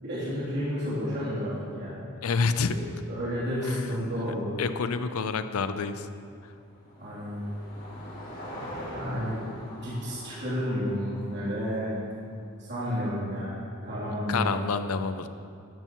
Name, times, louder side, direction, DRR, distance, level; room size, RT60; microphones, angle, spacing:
voice 1, 0.0-2.0 2.7-4.6 7.0-7.4 8.9-9.4 9.7-11.9 12.6-13.6 13.8-14.5, equal, 50° right, -10 dB, 3.2 m, -31 dB
voice 2, 2.2-2.8 3.6-3.8 4.6-6.1 6.4-6.5 14.3-15.3, left 5 dB, 85° left, 10 dB, 0.6 m, -28 dB
Car passing by / Engine, 6.0-12.4, equal, 45° left, 3.2 m, -43 dB
13.0 x 12.5 x 3.1 m, 2.4 s
head